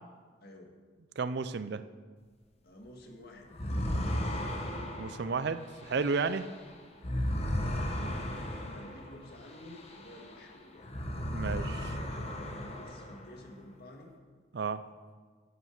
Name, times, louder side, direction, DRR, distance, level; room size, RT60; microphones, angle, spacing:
voice 1, 0.4-0.7 2.6-4.4 6.3-6.5 7.3-10.8 11.3-14.1, left 1 dB, 55° left, 1 dB, 1.8 m, -51 dB
voice 2, 1.2-1.8 5.0-6.4 11.2-11.8 14.5-14.8, right 4 dB, 55° right, 13 dB, 0.4 m, -32 dB
sound 1, 3.5-10.4 10.8-13.5, equal, 30° left, 1.1 m, -36 dB
11.0 x 9.2 x 6.4 m, 1.5 s
head